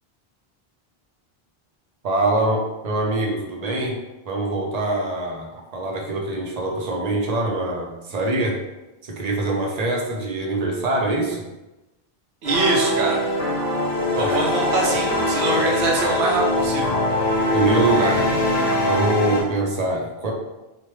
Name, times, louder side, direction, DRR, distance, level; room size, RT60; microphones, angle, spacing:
voice 1, 2.0-4.0 4.3-8.6 9.0-11.5 14.2-14.3 17.5-18.4 18.8-20.3, right 2 dB, 50° right, 0 dB, 0.5 m, -24 dB
sound 1, 12.4-19.4, left 1 dB, 45° left, 1.2 m, -22 dB
voice 2, 12.4-13.2 14.1-16.9, right 2 dB, 85° right, 0 dB, 0.9 m, -23 dB
3.2 x 2.1 x 3.0 m, 1.0 s
omnidirectional pair, 1.0 m